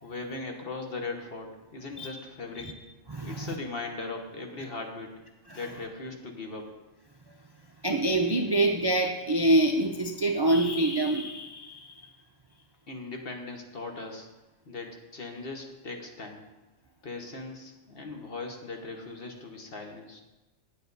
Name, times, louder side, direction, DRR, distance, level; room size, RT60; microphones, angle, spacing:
voice 1, 0.0-2.7 3.2-5.1 5.5-6.7 12.9-14.3 14.6-16.4 17.0-20.2, left 3 dB, 50° left, 3 dB, 1.4 m, -39 dB
voice 2, 3.1-3.5 5.5-5.6 7.8-12.1, right 1 dB, 40° right, 2 dB, 0.3 m, -26 dB
9.2 x 8.9 x 4.0 m, 1.1 s
omnidirectional pair, 1.4 m